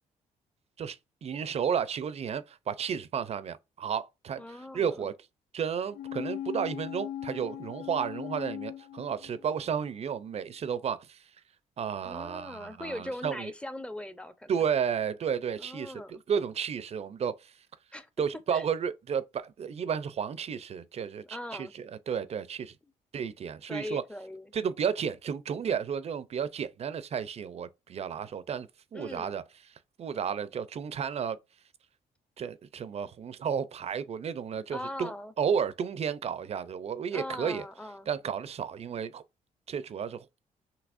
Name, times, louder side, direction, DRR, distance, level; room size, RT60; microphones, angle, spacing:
voice 1, 0.8-5.1 5.5-11.2 11.8-13.5 14.5-17.5 18.2-22.7 23.1-24.0 24.5-29.4 30.0-31.4 32.4-35.1 35.4-37.7 38.1-39.2 39.7-40.2, right 7 dB, 45° right, 0.6 m, -32 dB
voice 2, 4.4-5.1 12.0-14.5 15.6-16.2 17.9-18.1 18.5-18.7 21.3-21.7 22.8-22.9 23.7-24.5 28.9-29.4 34.5-35.3 37.1-38.1, left 1 dB, 10° left, 0.7 m, -40 dB
sound 1, 5.9-9.7 10.1-10.2, left 11 dB, 85° left, 0.4 m, -39 dB
6.1 x 2.9 x 2.5 m
cardioid pair, 95°, 14 cm